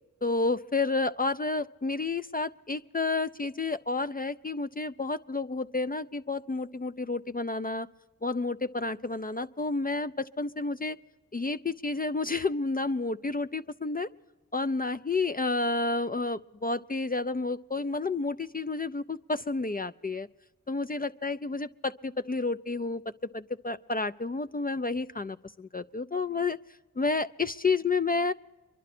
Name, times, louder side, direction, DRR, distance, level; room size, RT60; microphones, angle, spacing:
voice 1, 0.2-7.9 8.2-11.0 11.3-14.1 14.5-20.3 20.7-26.6 27.0-28.3, left 3 dB, 25° left, 11 dB, 0.4 m, -30 dB
23.5 x 11.5 x 4.3 m, 1.2 s
cardioid pair, 45°, 35 cm